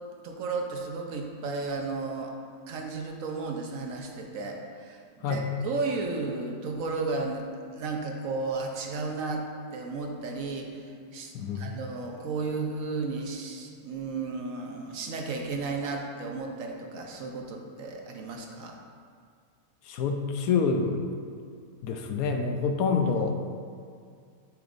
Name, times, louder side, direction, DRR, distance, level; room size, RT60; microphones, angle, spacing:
voice 1, 0.2-2.3 2.7-7.4 7.7-9.4 9.7-18.8, right 3 dB, 70° right, 2 dB, 1.0 m, -34 dB
voice 2, 11.3-11.8 19.9-21.0 21.8-23.5, left 5 dB, 75° left, 4 dB, 1.0 m, -27 dB
7.8 x 5.1 x 2.5 m, 2.2 s
omnidirectional pair, 1.6 m